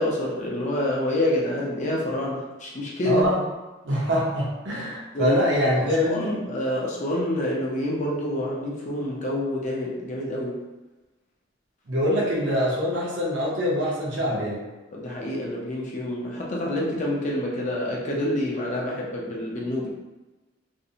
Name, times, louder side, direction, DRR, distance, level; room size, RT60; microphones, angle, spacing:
voice 1, 0.0-3.2 5.1-5.4 5.8-10.6 14.9-19.9, left 1 dB, 40° left, -3 dB, 0.5 m, -27 dB
voice 2, 3.0-3.4 3.8-6.3 11.9-14.6, equal, 70° right, -4 dB, 0.7 m, -24 dB
2.5 x 2.0 x 2.7 m, 1.1 s
head